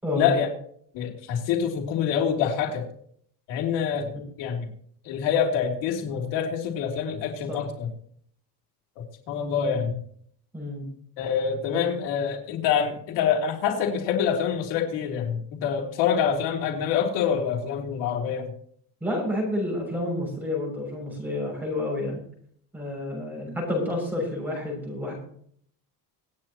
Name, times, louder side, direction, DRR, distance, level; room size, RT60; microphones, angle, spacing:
voice 1, 0.1-0.5 0.9-2.9 3.5-4.1 4.4-4.7 5.0-7.9 9.0-10.0 11.2-18.5, left 7 dB, 85° left, 1 dB, 3.2 m, -26 dB
voice 2, 10.5-10.8 11.7-11.9 19.0-22.2 22.7-25.1, left 1 dB, 5° right, -2 dB, 6.8 m, -29 dB
25.5 x 9.2 x 3.0 m, 0.63 s
cardioid pair, 160°, 42 cm